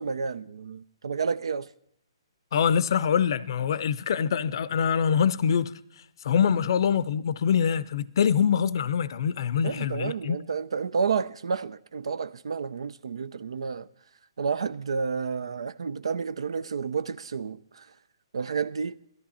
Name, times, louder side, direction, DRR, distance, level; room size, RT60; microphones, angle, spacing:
voice 1, 0.0-1.7 9.6-13.9 14.4-17.9 18.3-19.0, right 5 dB, 80° right, 0.5 m, -30 dB
voice 2, 2.5-5.7 6.2-10.4, left 7 dB, 55° left, 0.6 m, -24 dB
17.5 x 14.0 x 4.3 m
hypercardioid pair, 150°, 3 cm